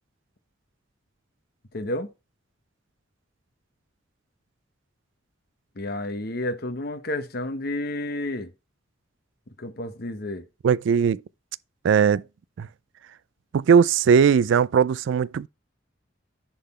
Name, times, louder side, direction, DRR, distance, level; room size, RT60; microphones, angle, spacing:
voice 1, 1.7-2.1 5.8-8.5 9.6-10.4, left 1 dB, 50° left, 0.9 m, -31 dB
voice 2, 10.6-11.2 11.8-12.2 12.6-12.7 13.5-15.5, right 7 dB, 70° right, 0.3 m, -19 dB
10.0 x 3.8 x 4.2 m
head